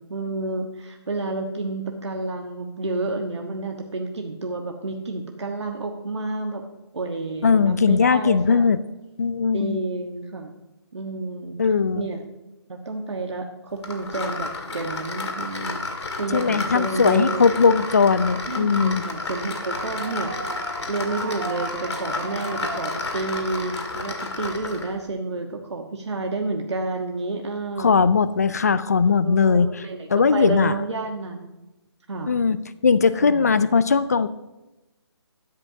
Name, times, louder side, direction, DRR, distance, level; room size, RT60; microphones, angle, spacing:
voice 1, 0.1-6.6 6.9-8.7 9.5-10.5 10.9-11.6 12.0-12.2 12.7-15.8 16.2-17.7 18.4-20.3 20.9-28.0 29.1-31.5 32.1-32.3 33.2-33.6, right 3 dB, 90° right, 3 dB, 1.2 m, -30 dB
voice 2, 7.4-8.8 9.2-9.8 11.6-12.1 16.3-19.0 27.8-29.7 30.1-30.8 32.3-32.6 32.8-34.3, left 5 dB, 35° left, 16 dB, 0.4 m, -19 dB
sound 1, 13.8-24.9, left 3 dB, 75° left, 2.0 m, -31 dB
Human voice / Clapping / Cheering, 18.9-24.9, right 3 dB, 40° right, 3.0 m, -39 dB
13.0 x 10.5 x 2.7 m, 1.0 s
hypercardioid pair, 170°, 14 cm